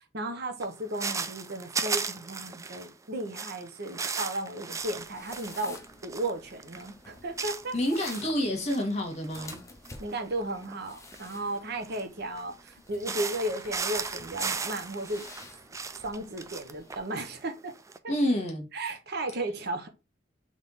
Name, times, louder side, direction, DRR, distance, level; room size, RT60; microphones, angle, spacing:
voice 1, 0.1-5.8 6.0-7.7 10.0-15.2 16.0-17.7 18.0-18.1 18.7-19.9, right 1 dB, 60° right, 0.8 m, -34 dB
sound 1, 0.6-2.9 3.2-9.6 9.9-12.7 13.0-18.0, right 5 dB, 15° right, 0.3 m, -36 dB
sound 2, 4.8-17.0, left 3 dB, 15° left, 0.7 m, -51 dB
voice 2, 7.7-9.6 18.1-18.7, equal, 35° left, 1.5 m, -28 dB
3.5 x 3.2 x 4.1 m
head